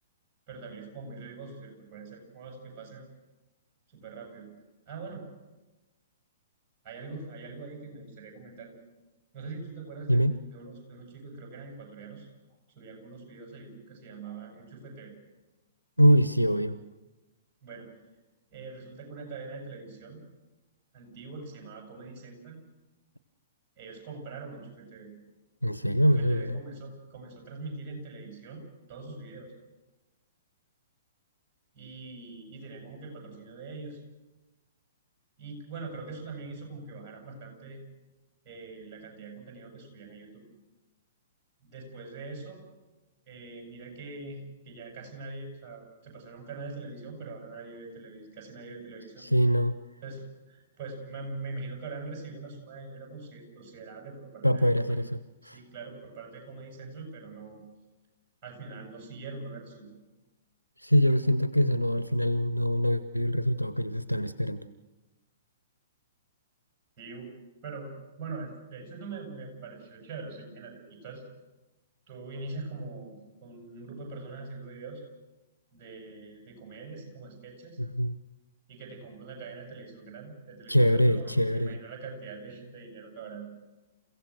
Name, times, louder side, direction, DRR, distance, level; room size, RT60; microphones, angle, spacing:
voice 1, 0.5-3.1 3.9-4.5 4.9-5.3 6.8-8.7 9.3-12.3 12.8-15.1 17.6-17.9 18.5-20.2 20.9-22.6 23.8-25.1 25.9-29.5 31.7-34.0 35.4-37.8 38.4-40.4 41.6-42.6 43.3-49.3 50.0-55.0 55.4-57.6 58.4-59.9 67.0-67.3 67.6-67.9 68.2-71.2 72.1-75.0 75.7-77.8 78.7-83.5, right 3 dB, 30° right, 2 dB, 7.8 m, -43 dB
voice 2, 16.0-16.8 25.6-26.6 49.2-49.7 54.4-55.6 60.8-64.7 77.8-78.2 80.7-81.8, equal, 90° right, 14 dB, 0.8 m, -24 dB
29.0 x 16.5 x 6.4 m, 1.1 s
figure-of-eight pair, 110°, 0 cm